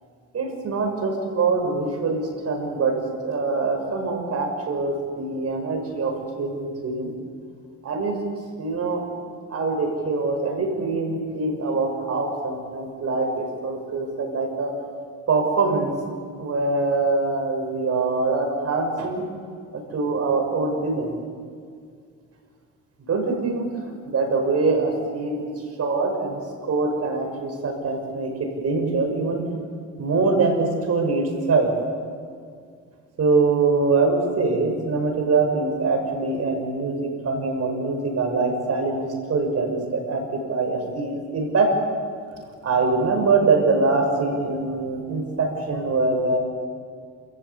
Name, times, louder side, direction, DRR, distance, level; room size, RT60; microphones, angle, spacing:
voice 1, 0.3-7.1 7.8-8.2 8.6-9.0 9.5-14.7 15.3-15.9 16.4-19.2 19.7-21.1 23.1-23.7 24.1-25.5 25.8-29.4 30.0-31.7 33.2-41.7 42.6-46.4, right 3 dB, 55° right, 3 dB, 6.3 m, -23 dB
28.5 x 15.0 x 8.5 m, 2.2 s
cardioid pair, 90°, 30 cm